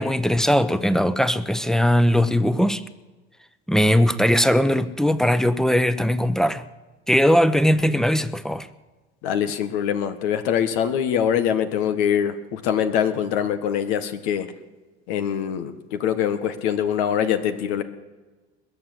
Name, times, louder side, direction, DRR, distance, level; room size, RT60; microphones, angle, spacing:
voice 1, 0.0-2.8 3.7-6.6 7.1-8.7, equal, ahead, 13 dB, 1.0 m, -19 dB
voice 2, 9.2-14.5 15.1-17.8, left 9 dB, 80° left, 8 dB, 1.5 m, -23 dB
21.0 x 8.5 x 7.8 m, 1.3 s
hypercardioid pair, 80°, 32 cm